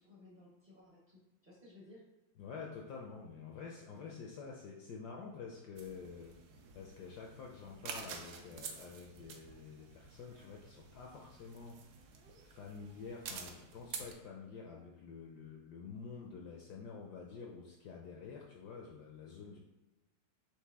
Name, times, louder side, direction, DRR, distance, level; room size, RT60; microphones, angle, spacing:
voice 1, 0.0-2.1, left 2 dB, 40° right, -5 dB, 0.7 m, -58 dB
voice 2, 2.4-6.4 6.7-11.8 12.4-19.6, left 5 dB, 75° left, -1 dB, 0.9 m, -48 dB
sound 1, 5.8-14.1, right 5 dB, 75° right, 0.9 m, -50 dB
4.9 x 2.8 x 3.4 m, 1.1 s
omnidirectional pair, 2.2 m